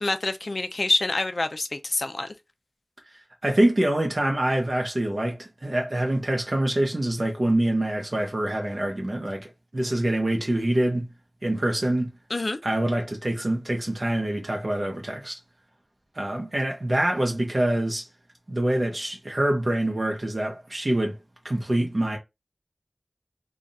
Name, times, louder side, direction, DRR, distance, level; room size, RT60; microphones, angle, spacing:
voice 1, 0.0-2.3 12.3-12.6, left 2 dB, 85° left, 0.5 m, -26 dB
voice 2, 3.4-11.1 11.4-12.1 12.6-15.4 16.1-18.1 18.5-21.2 21.4-22.2, right 1 dB, 65° right, 1.1 m, -25 dB
3.5 x 2.4 x 4.1 m
wide cardioid pair, 45°, 0 cm